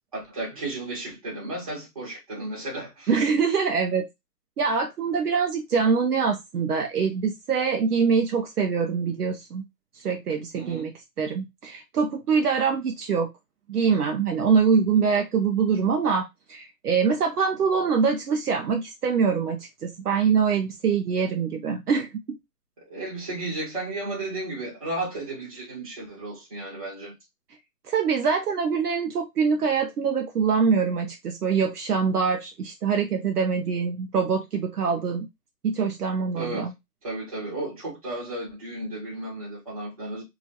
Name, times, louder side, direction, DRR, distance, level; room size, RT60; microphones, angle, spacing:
voice 1, 0.1-3.1 10.5-10.9 22.9-27.1 36.4-36.7 37.0-40.2, right 2 dB, 20° right, 1.0 m, -33 dB
voice 2, 3.1-4.1 4.6-9.6 9.9-10.9 11.2-13.3 13.7-22.4 27.9-35.3 35.6-36.7, right 5 dB, 70° right, 0.6 m, -24 dB
2.8 x 2.4 x 2.7 m
hypercardioid pair, 175°, 48 cm